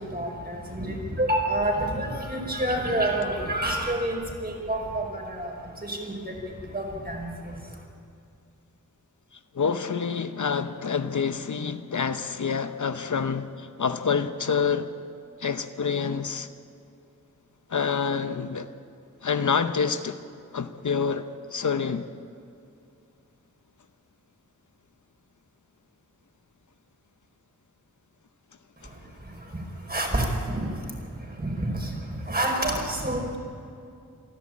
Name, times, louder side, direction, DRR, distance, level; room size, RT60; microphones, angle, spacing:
voice 1, 0.0-5.5 5.8-6.3 6.7-7.5 29.9-30.7 31.4-31.9 32.3-33.4, right 1 dB, 30° right, 1 dB, 4.9 m, -28 dB
voice 2, 9.5-14.9 15.4-16.5 17.7-18.7 19.2-20.2 20.5-22.1, left 6 dB, 65° left, 10 dB, 0.9 m, -27 dB
27.0 x 12.0 x 8.6 m, 2.5 s
wide cardioid pair, 80°, 33 cm